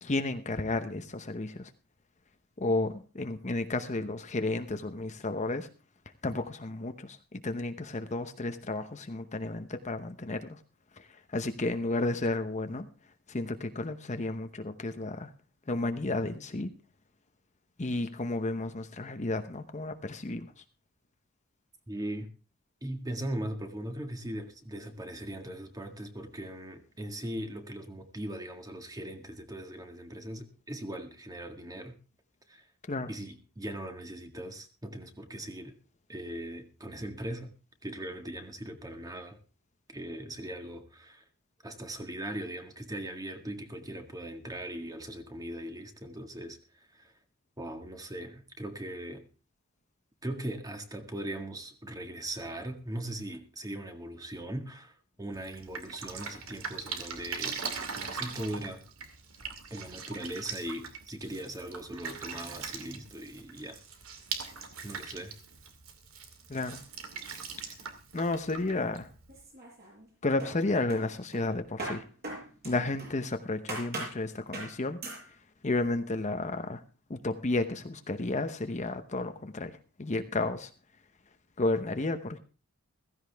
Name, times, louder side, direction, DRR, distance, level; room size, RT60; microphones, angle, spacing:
voice 1, 0.0-1.7 2.6-5.7 6.2-10.6 11.0-12.9 13.3-15.3 15.7-16.7 17.8-20.6 32.9-33.1 66.5-66.8 67.6-67.7 68.1-69.1 70.2-72.0 72.6-75.0 75.6-76.8 77.1-80.7 81.6-82.4, left 2 dB, 30° left, 8 dB, 0.9 m, -32 dB
voice 2, 21.9-22.3 22.8-31.9 32.5-32.7 33.1-35.7 36.1-37.5 37.8-39.4 39.9-41.2 41.6-47.1 47.6-49.2 50.2-57.6 58.0-58.8 59.7-63.8 64.8-65.3, right 1 dB, 15° right, 5 dB, 1.8 m, -39 dB
Drip, 55.3-69.4, right 6 dB, 65° right, 2.4 m, -41 dB
sound 1, 69.3-70.1 70.4-73.2 73.7-74.2 74.5-74.8 75.0-75.3, right 2 dB, 45° right, 7.9 m, -40 dB
15.5 x 15.5 x 3.5 m, 0.36 s
head